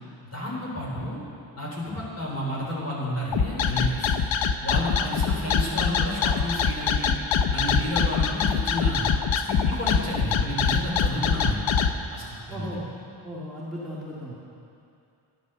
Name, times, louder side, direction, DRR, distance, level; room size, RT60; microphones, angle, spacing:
voice 1, 0.3-1.2 1.6-4.1 4.6-7.1 7.5-9.1 9.4-11.7 12.1-12.8, left 1 dB, 35° left, -4 dB, 3.5 m, -31 dB
sound 1, 3.3-11.9, left 6 dB, 75° left, 0.7 m, -23 dB
voice 2, 12.5-12.9 13.2-14.4, equal, ahead, -8 dB, 1.9 m, -36 dB
12.0 x 9.7 x 6.8 m, 2.6 s
wide cardioid pair, 125°, 46 cm